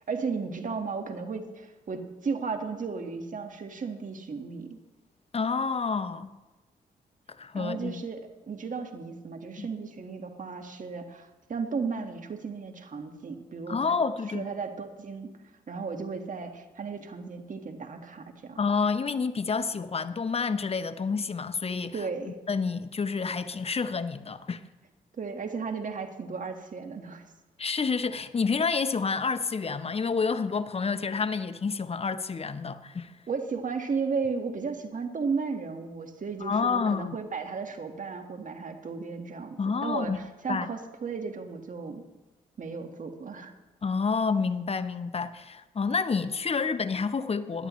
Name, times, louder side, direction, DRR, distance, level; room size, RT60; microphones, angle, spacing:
voice 1, 0.1-4.8 7.5-13.8 14.3-15.3 15.7-18.6 21.9-22.4 25.2-27.2 33.3-42.0 42.6-43.5, right 5 dB, 50° right, 1.7 m, -34 dB
voice 2, 5.3-6.3 7.4-8.0 9.6-9.7 13.7-14.5 18.6-22.1 22.5-24.6 27.6-33.1 36.4-37.2 39.6-40.2 40.5-40.7 43.8-47.7, left 5 dB, 35° left, 0.9 m, -29 dB
17.0 x 11.5 x 3.2 m
supercardioid pair, 50°, 17 cm